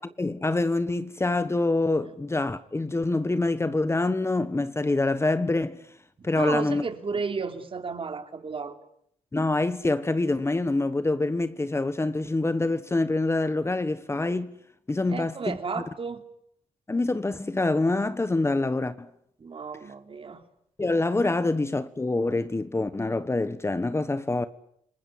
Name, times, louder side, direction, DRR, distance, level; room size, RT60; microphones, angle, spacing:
voice 1, 0.2-5.8 6.2-6.8 9.3-14.5 14.9-15.6 16.9-19.1 20.8-24.5, left 2 dB, 20° left, 1.2 m, -26 dB
voice 2, 6.2-8.7 15.1-16.2 19.4-20.4, right 4 dB, 40° right, 3.3 m, -33 dB
29.5 x 20.0 x 9.3 m
cardioid pair, 90°, 13 cm